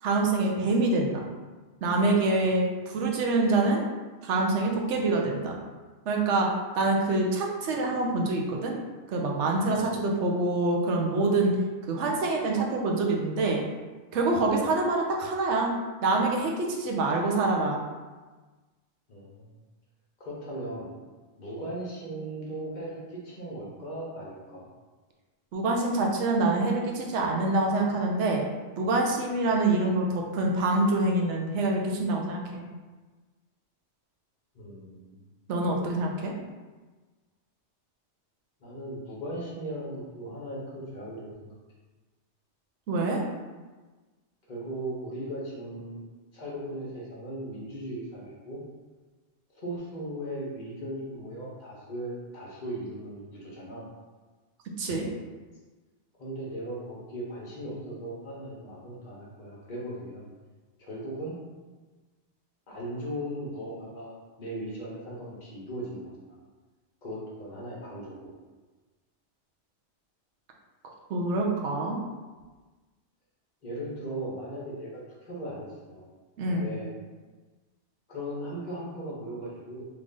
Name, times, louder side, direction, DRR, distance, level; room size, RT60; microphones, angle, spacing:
voice 1, 0.0-1.2 1.8-3.8 4.2-5.5 6.1-6.5 6.8-8.7 9.1-11.5 11.9-13.6 14.1-15.7 16.0-17.8 25.5-28.4 28.8-32.6 35.5-36.3 42.9-43.2 54.8-55.1 71.1-72.0 76.4-76.7, right 2 dB, 85° right, 0 dB, 0.9 m, -26 dB
voice 2, 19.1-19.6 20.2-20.9 21.4-24.7 34.5-35.2 38.6-41.6 44.5-46.0 46.3-48.6 49.5-53.8 56.2-60.3 60.8-61.4 62.7-66.4 67.0-68.4 73.6-76.1 76.5-76.9 78.1-79.9, right 1 dB, 45° left, -5 dB, 0.9 m, -38 dB
3.3 x 2.5 x 3.6 m, 1.3 s
omnidirectional pair, 1.2 m